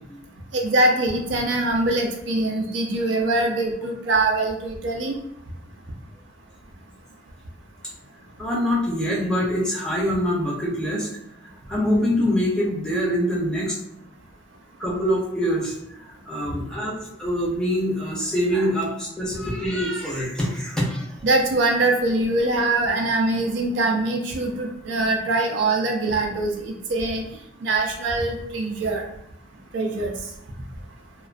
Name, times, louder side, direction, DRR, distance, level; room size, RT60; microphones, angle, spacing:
voice 1, 0.5-5.2 21.2-27.2 27.6-29.0 29.7-30.1, right 2 dB, 70° right, 1 dB, 0.4 m, -23 dB
voice 2, 8.4-11.1 11.7-13.8 14.8-15.7 16.1-21.2, equal, 5° left, -5 dB, 0.5 m, -24 dB
2.3 x 2.2 x 2.4 m, 0.79 s
head